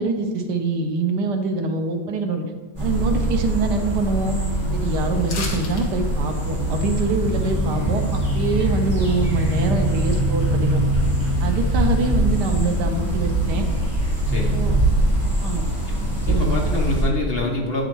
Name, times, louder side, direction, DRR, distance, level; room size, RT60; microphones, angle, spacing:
voice 1, 0.0-2.4 2.8-4.4 4.7-10.8 11.4-13.6 14.5-14.8 15.4-15.6 16.3-16.6, right 3 dB, 80° right, 5 dB, 1.4 m, -24 dB
sound 1, 2.8-17.0, right 1 dB, 30° right, 1.9 m, -22 dB
sound 2, 5.3-5.9 6.2-6.3, left 3 dB, 70° left, 1.8 m, -31 dB
voice 2, 14.3-14.7 15.9-16.0 16.3-17.8, left 2 dB, 40° left, -1 dB, 1.1 m, -26 dB
8.8 x 6.5 x 3.1 m, 1.3 s
omnidirectional pair, 1.8 m